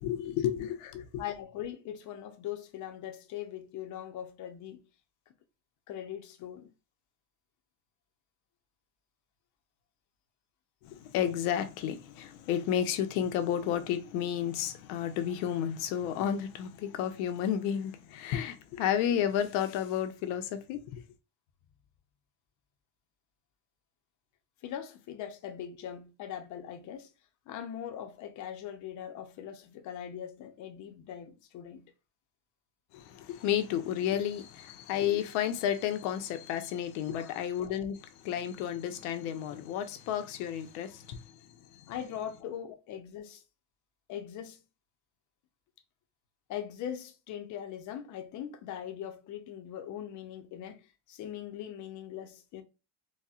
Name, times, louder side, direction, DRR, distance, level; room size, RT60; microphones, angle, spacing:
voice 1, 0.0-1.2 10.8-21.0 32.9-41.9, left 10 dB, 85° left, 0.7 m, -32 dB
voice 2, 1.2-4.8 5.9-6.7 24.6-27.1 27.5-31.8 37.1-37.4 41.9-43.4 44.1-44.6 46.5-52.6, left 10 dB, 40° left, 0.5 m, -41 dB
4.1 x 2.1 x 2.3 m
cardioid pair, 170°, 46 cm